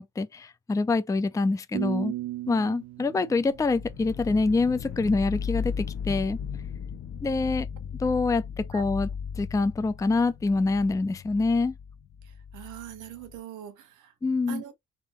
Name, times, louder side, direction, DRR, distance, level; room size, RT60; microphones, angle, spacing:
voice 1, 0.0-2.1 2.5-6.4 7.2-7.7 8.0-9.1 9.4-11.7 14.2-14.6, left 3 dB, 10° left, 0.4 m, -25 dB
sound 1, 1.7-4.7, right 15 dB, 60° right, 0.5 m, -36 dB
sound 2, 3.5-13.4, left 7 dB, 50° left, 0.6 m, -36 dB
voice 2, 12.2-14.1 14.5-14.8, right 11 dB, 90° right, 1.2 m, -42 dB
3.6 x 3.3 x 4.2 m
cardioid pair, 90°, 30 cm